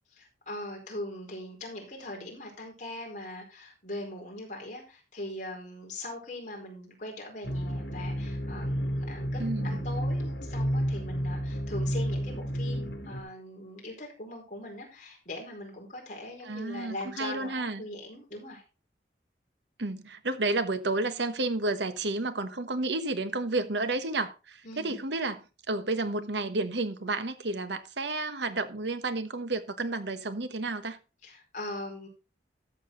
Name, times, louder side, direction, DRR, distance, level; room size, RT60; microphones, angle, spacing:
voice 1, 0.2-18.6 24.6-25.0 31.2-32.1, left 1 dB, 45° left, 4.6 m, -41 dB
sound 1, 7.4-13.2, equal, 80° left, 2.5 m, -31 dB
voice 2, 9.4-9.8 16.4-17.8 19.8-31.0, right 2 dB, 80° right, 1.3 m, -31 dB
13.0 x 7.3 x 3.9 m
head